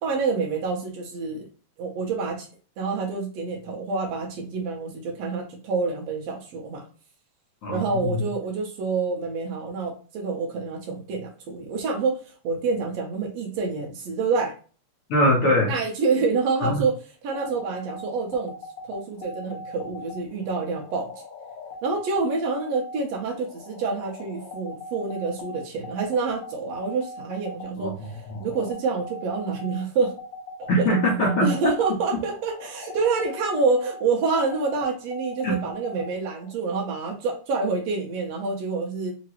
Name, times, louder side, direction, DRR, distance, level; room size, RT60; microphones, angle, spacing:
voice 1, 0.0-1.5 1.8-2.5 2.8-6.8 7.7-14.5 15.7-17.0 17.2-18.5 18.9-21.1 21.8-30.1 30.6-30.9 31.4-39.1, right 4 dB, 70° right, 1 dB, 1.9 m, -27 dB
voice 2, 7.6-8.2 15.1-15.7 16.6-16.7 27.8-28.1 30.7-31.5 35.4-35.6, equal, 60° left, -3 dB, 1.6 m, -22 dB
sound 1, 17.3-36.5, left 2 dB, 80° left, 1.0 m, -40 dB
4.9 x 2.9 x 2.9 m, 0.37 s
omnidirectional pair, 3.3 m